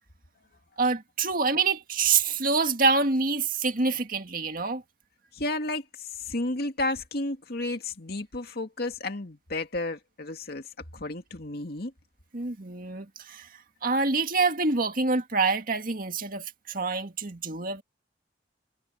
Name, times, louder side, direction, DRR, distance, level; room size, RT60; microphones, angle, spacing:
voice 1, 0.8-4.8 12.3-13.5 13.8-17.8, right 4 dB, 50° right, 2.0 m, -26 dB
voice 2, 5.3-10.6 10.9-11.9, left 2 dB, 60° left, 2.3 m, -32 dB
head